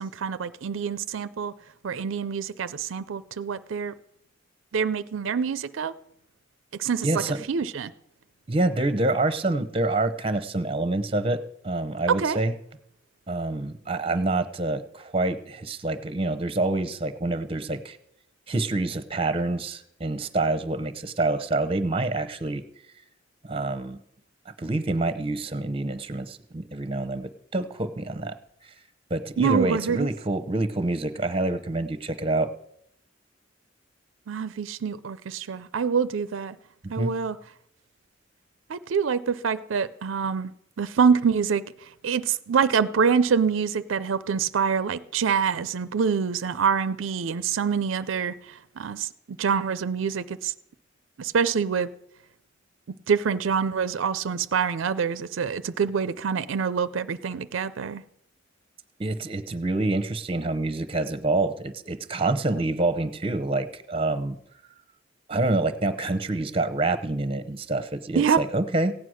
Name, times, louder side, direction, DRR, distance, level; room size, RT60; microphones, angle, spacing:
voice 1, 0.0-1.5 1.8-3.9 4.7-5.9 6.8-7.2 7.5-7.9 12.1-12.4 29.4-30.1 34.3-36.6 36.9-37.4 38.7-40.5 40.8-41.6 42.0-49.1 49.4-50.5 51.2-51.9 53.1-58.0 68.2-68.4, right 6 dB, 80° right, 0.5 m, -25 dB
voice 2, 7.0-7.4 8.5-12.5 13.3-18.0 18.5-22.6 23.4-24.0 24.5-28.3 28.6-28.7 29.1-32.5 36.8-37.1 59.0-64.4 65.3-68.9, right 2 dB, 30° right, 0.8 m, -27 dB
16.0 x 9.3 x 6.3 m
head